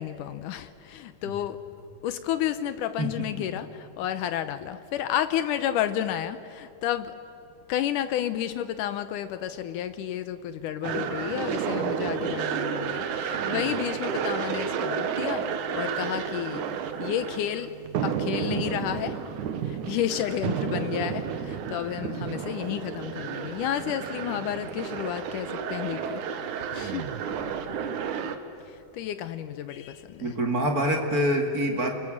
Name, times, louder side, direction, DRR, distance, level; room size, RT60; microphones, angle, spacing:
voice 1, 0.0-1.6 2.0-7.1 7.7-16.6 17.0-17.7 18.0-19.2 19.6-26.2 26.7-27.1 28.7-30.3, left 11 dB, 80° left, 11 dB, 1.9 m, -31 dB
sound 1, 10.8-28.4, right 7 dB, 65° right, 2.3 m, -31 dB
voice 2, 30.2-32.0, equal, 30° right, 2 dB, 1.8 m, -25 dB
28.5 x 22.0 x 7.5 m, 2.6 s
omnidirectional pair, 4.4 m